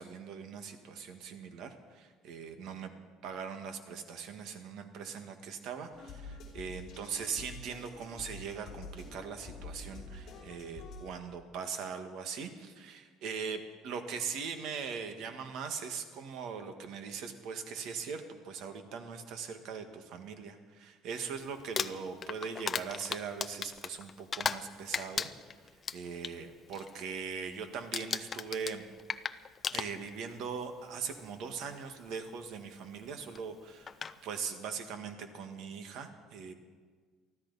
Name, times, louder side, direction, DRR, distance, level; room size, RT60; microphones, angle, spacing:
voice 1, 0.0-2.9 3.2-25.3 25.9-28.8 29.7-33.9 34.2-36.5, right 6 dB, 55° right, 7 dB, 1.5 m, -40 dB
sound 1, 5.9-11.1, left 3 dB, 40° left, 5.0 m, -47 dB
Crumpling crinkling, 21.6-24.7 24.9-26.3 26.7-27.0 27.3-27.6 27.9-30.3 31.3-31.4 33.3-33.4 33.9-34.1, left 6 dB, 25° left, 0.4 m, -36 dB
24.0 x 14.5 x 4.1 m, 1.5 s
cardioid pair, 170°, 0 cm